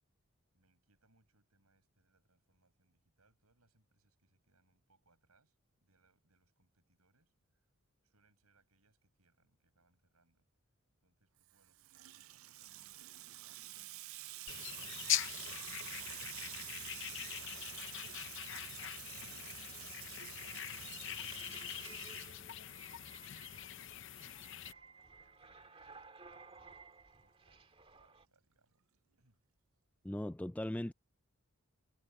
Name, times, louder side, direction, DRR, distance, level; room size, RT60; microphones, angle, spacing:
voice 1, 0.5-7.7 8.0-10.5 11.0-13.9 14.7-20.9 21.6-26.7 27.2-28.8 29.2-29.4, right 3 dB, 85° right, 7.9 m, -76 dB
Water tap faucet / Sink (filling or washing), 11.5-22.9, right 17 dB, 70° right, 0.5 m, -49 dB
sound 1, 14.5-24.7, left 12 dB, 55° left, 0.7 m, -42 dB
sound 2, 20.8-28.3, right 4 dB, 25° right, 1.8 m, -57 dB
voice 2, 30.0-30.9, left 1 dB, 5° left, 0.3 m, -38 dB
head